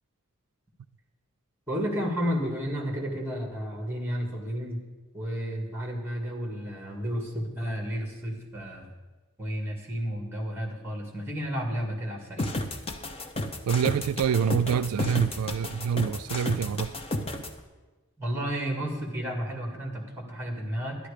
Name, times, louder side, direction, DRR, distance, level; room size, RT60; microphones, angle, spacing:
voice 1, 1.7-4.8 5.1-8.9 9.4-12.5 18.2-21.0, equal, 10° right, 1.9 m, -32 dB
sound 1, 12.4-17.5, left 1 dB, 25° left, 0.7 m, -32 dB
voice 2, 13.7-16.9, right 7 dB, 90° right, 0.3 m, -26 dB
12.0 x 10.5 x 5.0 m
head